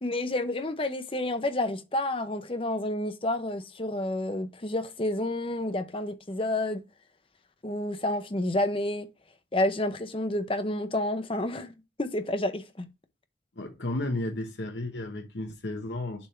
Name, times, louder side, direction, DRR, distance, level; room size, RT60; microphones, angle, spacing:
voice 1, 0.0-6.8 7.6-9.1 9.5-12.9, left 1 dB, 30° left, 0.7 m, -29 dB
voice 2, 13.6-16.3, left 1 dB, 65° left, 1.0 m, -33 dB
7.1 x 3.6 x 4.3 m
head